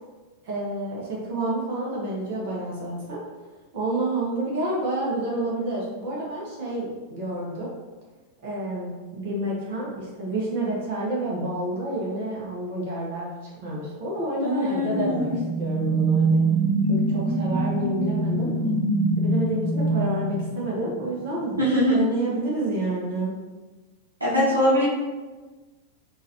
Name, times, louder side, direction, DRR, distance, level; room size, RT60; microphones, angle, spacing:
voice 1, 0.4-3.2 3.7-7.7 8.4-15.3 15.6-16.4 16.9-18.5 19.2-21.5 21.9-23.3, right 1 dB, 50° right, -4 dB, 1.2 m, -29 dB
voice 2, 14.4-15.4 21.6-22.0 24.2-24.9, equal, 80° right, -7 dB, 1.2 m, -22 dB
sound 1, 14.9-21.3, right 2 dB, 15° left, 1.0 m, -24 dB
5.4 x 2.8 x 2.9 m, 1.3 s
figure-of-eight pair, 90°, 0 cm